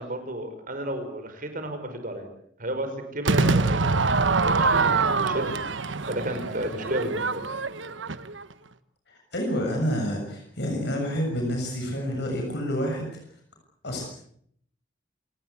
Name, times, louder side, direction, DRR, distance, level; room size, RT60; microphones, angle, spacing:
voice 1, 0.0-2.3 2.6-3.8 4.1-5.5 6.1-7.5, right 1 dB, 45° right, 7 dB, 5.5 m, -33 dB
Crowd / Fireworks, 3.2-8.5, right 4 dB, 80° right, 1.2 m, -24 dB
voice 2, 9.1-13.1 13.8-14.1, equal, 60° left, 2 dB, 7.0 m, -28 dB
28.0 x 19.0 x 8.4 m, 0.66 s
head